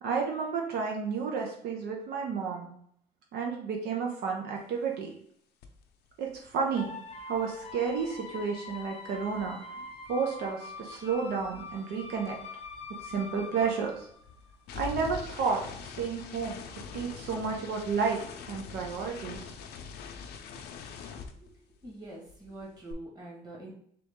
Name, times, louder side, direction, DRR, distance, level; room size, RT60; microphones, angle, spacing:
voice 1, 0.0-2.7 3.3-5.1 6.2-6.9 7.2-9.6 10.1-12.4 13.0-14.1 14.7-16.7 16.9-18.2 18.5-19.5, right 5 dB, 75° right, 1 dB, 0.8 m, -31 dB
sound 1, 5.6-5.8 6.1-10.5 10.7-22.0 22.3-22.9, left 6 dB, 75° left, 0.6 m, -45 dB
sound 2, 6.8-14.7, left 4 dB, 35° left, 0.7 m, -44 dB
voice 2, 21.1-21.5 21.8-23.7, right 2 dB, 25° right, -2 dB, 1.6 m, -45 dB
3.8 x 3.1 x 3.6 m, 0.65 s
cardioid pair, 110°, 17 cm